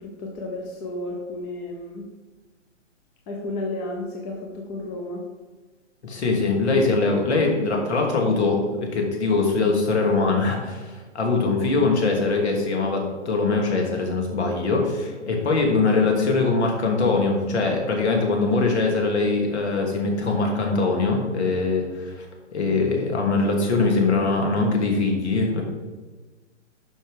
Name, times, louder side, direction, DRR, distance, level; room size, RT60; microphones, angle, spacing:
voice 1, 0.0-2.1 3.3-5.2 15.2-15.3, left 2 dB, 25° left, 1 dB, 1.1 m, -32 dB
voice 2, 6.0-22.3 22.5-25.6, left 3 dB, 60° left, 1 dB, 2.8 m, -22 dB
9.9 x 6.2 x 5.0 m, 1.3 s
hypercardioid pair, 135°, 37 cm